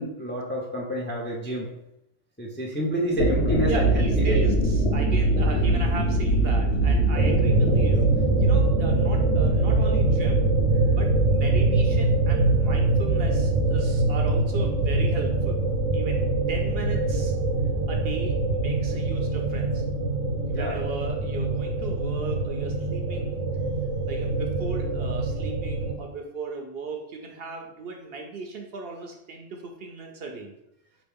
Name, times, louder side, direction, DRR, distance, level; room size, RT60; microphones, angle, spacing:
voice 1, 0.0-1.7 2.4-4.4 20.5-20.8, equal, 15° left, -3 dB, 0.4 m, -29 dB
sound 1, 3.0-22.7, right 2 dB, 80° left, 1.2 m, -26 dB
voice 2, 3.7-8.1 8.4-10.5 10.9-15.6 15.9-17.3 17.9-19.8 20.5-23.4 24.1-30.5, right 3 dB, 60° right, 3 dB, 0.7 m, -37 dB
sound 2, 7.2-26.0, right 2 dB, 85° right, 1.1 m, -24 dB
4.5 x 3.0 x 3.5 m, 0.80 s
omnidirectional pair, 1.3 m